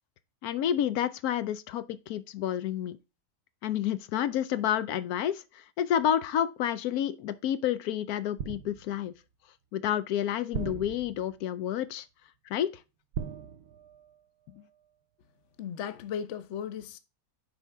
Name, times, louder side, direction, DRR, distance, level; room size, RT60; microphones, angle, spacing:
voice 1, 0.4-3.0 3.6-9.1 9.7-12.1 12.5-12.7, left 10 dB, 85° left, 1.1 m, -29 dB
sound 1, 8.4-9.1 10.5-11.5 13.1-14.2 14.5-14.8, right 7 dB, 85° right, 1.2 m, -39 dB
voice 2, 15.6-17.0, left 8 dB, 60° left, 1.0 m, -36 dB
10.0 x 4.3 x 3.4 m
omnidirectional pair, 1.5 m